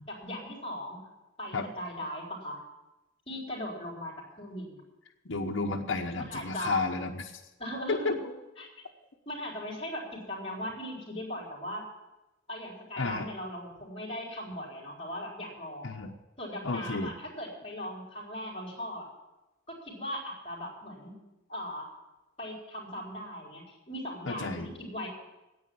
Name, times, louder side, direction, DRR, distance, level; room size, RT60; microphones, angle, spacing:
voice 1, 0.1-1.1 1.4-2.6 3.3-4.8 6.1-6.8 7.6-8.1 8.6-8.7 9.3-11.8 12.5-15.9 16.4-19.1 19.7-21.1 21.5-21.9 22.4-25.1, equal, 30° left, -3 dB, 4.2 m, -39 dB
voice 2, 5.2-7.2 7.9-8.1 13.0-13.3 15.8-16.1 16.6-17.1 24.3-24.7, left 3 dB, 65° left, -1 dB, 1.0 m, -31 dB
10.0 x 8.7 x 9.5 m, 1.0 s
head